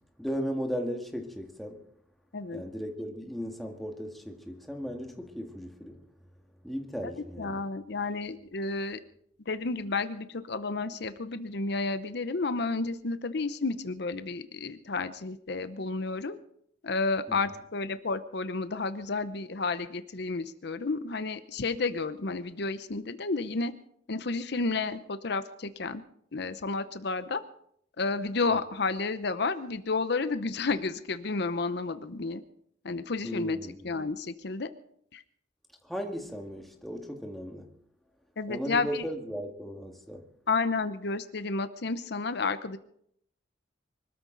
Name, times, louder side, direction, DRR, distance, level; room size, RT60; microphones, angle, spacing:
voice 1, 0.2-1.8 2.5-6.0 6.6-7.6 17.3-17.4 33.2-33.8 35.8-37.7 38.5-40.3, equal, ahead, 1.9 m, -36 dB
voice 2, 2.3-2.6 7.0-7.1 7.4-9.0 9.4-16.4 16.8-23.7 24.1-26.0 26.3-27.4 28.0-32.4 32.8-33.6 33.8-34.7 35.1-35.2 38.4-39.1 40.5-42.8, left 3 dB, 65° left, 0.8 m, -31 dB
24.5 x 13.5 x 4.0 m
head